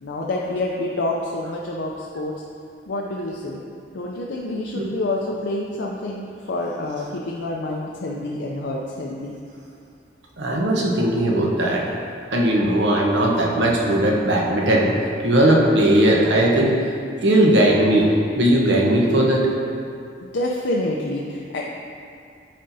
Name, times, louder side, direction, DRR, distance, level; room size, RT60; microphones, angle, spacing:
voice 1, 0.0-2.4 2.9-3.6 3.9-9.4 20.2-21.6, left 2 dB, 80° left, -2 dB, 0.5 m, -27 dB
voice 2, 10.4-11.9 12.3-15.0 15.2-16.8 17.2-18.1 18.4-19.5, right 1 dB, 80° right, -2 dB, 1.0 m, -18 dB
10.0 x 4.3 x 2.7 m, 2.4 s
head